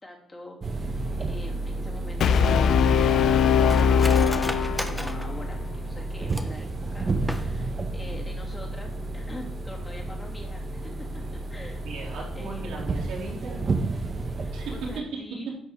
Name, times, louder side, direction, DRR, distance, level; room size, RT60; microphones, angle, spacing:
voice 1, 0.0-1.0 1.3-2.7 3.3-4.5 4.8-10.9 11.5-11.8 12.3-12.7 13.9-14.1 14.4-15.5, left 1 dB, 20° left, -2 dB, 3.0 m, -44 dB
sound 1, 0.6-15.0, right 2 dB, 40° right, 1.3 m, -31 dB
Brass instrument, 2.2-5.3, left 7 dB, 70° left, 0.5 m, -21 dB
Cutlery silverware, 3.7-6.7 7.1-7.8 8.2-8.3 8.6-9.0 9.3-9.5, equal, ahead, 1.0 m, -37 dB
voice 2, 11.8-13.8 14.5-14.8, right 3 dB, 80° right, -4 dB, 3.7 m, -38 dB
10.5 x 6.2 x 4.8 m, 0.68 s
cardioid pair, 90°, 0 cm